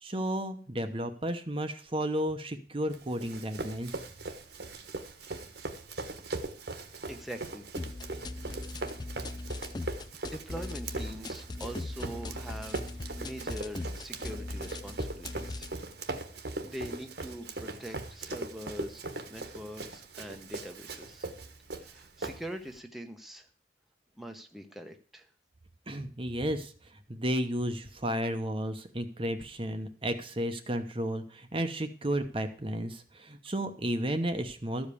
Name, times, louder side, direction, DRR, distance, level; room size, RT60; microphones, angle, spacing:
voice 1, 0.0-4.0 25.9-34.9, equal, 30° right, 7 dB, 0.9 m, -33 dB
Run, 2.9-22.8, right 2 dB, 60° right, 1.4 m, -40 dB
voice 2, 7.0-7.6 8.7-8.8 10.2-15.7 16.6-19.0 19.3-21.3 21.7-23.5 24.2-25.3, equal, ahead, 4 dB, 1.0 m, -43 dB
sound 1, 7.8-15.8, left 2 dB, 25° left, 0.5 m, -40 dB
13.5 x 5.2 x 8.4 m, 0.43 s
head